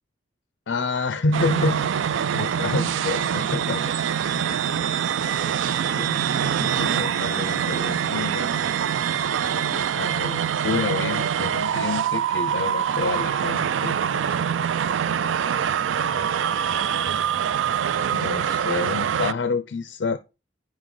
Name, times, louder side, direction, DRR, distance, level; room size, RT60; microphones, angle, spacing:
voice 1, 0.7-1.9 2.3-3.8 4.3-4.5 5.9-6.3 6.6-8.5 10.0-14.0 18.1-20.2, left 3 dB, 70° left, 0.6 m, -28 dB
sound 1, 1.3-19.3, right 8 dB, 85° right, 0.4 m, -24 dB
voice 2, 3.6-4.0 4.4-5.1 5.4-6.1 9.4-9.9 15.1-15.7, left 2 dB, 30° left, 1.3 m, -43 dB
9.2 x 6.2 x 3.9 m
head